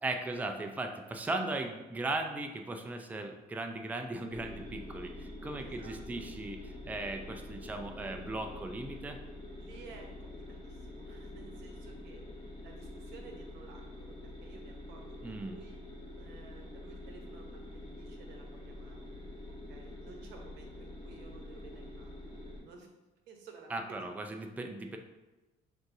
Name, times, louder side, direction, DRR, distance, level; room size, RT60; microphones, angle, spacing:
voice 1, 0.0-9.2 15.2-15.6 23.7-25.0, right 2 dB, 10° right, 5 dB, 0.4 m, -37 dB
sound 1, 4.3-22.6, left 1 dB, 30° left, 1.3 m, -46 dB
voice 2, 5.6-6.0 9.6-12.2 12.6-15.8 16.1-19.1 19.7-22.9 23.3-24.1, right 4 dB, 90° right, 2 dB, 0.8 m, -54 dB
6.0 x 2.6 x 2.6 m, 1.1 s
cardioid pair, 110°, 17 cm